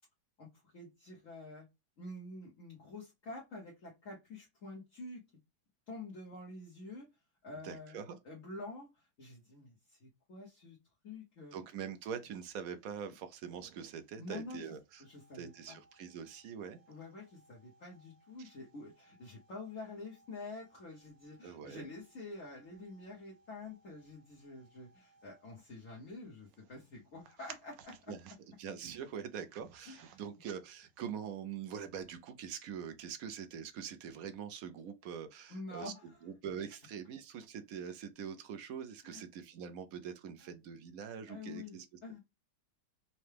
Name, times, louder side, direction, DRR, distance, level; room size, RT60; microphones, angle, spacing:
voice 1, 0.4-1.6 2.0-5.2 5.9-8.0 8.2-10.8 11.0-11.6 14.2-14.7 15.0-15.8 16.9-28.1 29.9-30.2 35.5-36.3 39.0-39.2 40.4-40.5 41.3-42.2, left 2 dB, 55° left, 1.2 m, -48 dB
voice 2, 7.6-8.2 11.5-15.0 15.3-16.8 21.4-21.8 28.1-28.2 28.6-35.9 36.2-41.9, right 7 dB, 70° right, 0.9 m, -44 dB
sound 1, 11.6-31.1, right 10 dB, 85° right, 1.3 m, -62 dB
sound 2, 14.9-25.8, right 2 dB, 85° left, 1.6 m, -69 dB
5.6 x 2.1 x 3.3 m
omnidirectional pair, 1.9 m